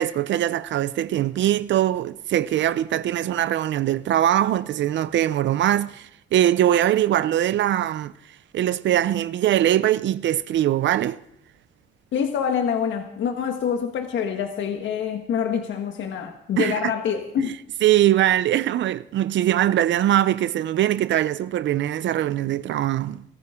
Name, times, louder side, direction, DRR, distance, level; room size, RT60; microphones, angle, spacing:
voice 1, 0.0-8.1 8.5-11.2 16.6-16.9 17.4-17.5 17.8-23.2, right 12 dB, 70° right, 0.6 m, -22 dB
voice 2, 12.1-17.6, left 7 dB, 70° left, 1.5 m, -26 dB
21.5 x 14.0 x 3.7 m
cardioid pair, 90°, 20 cm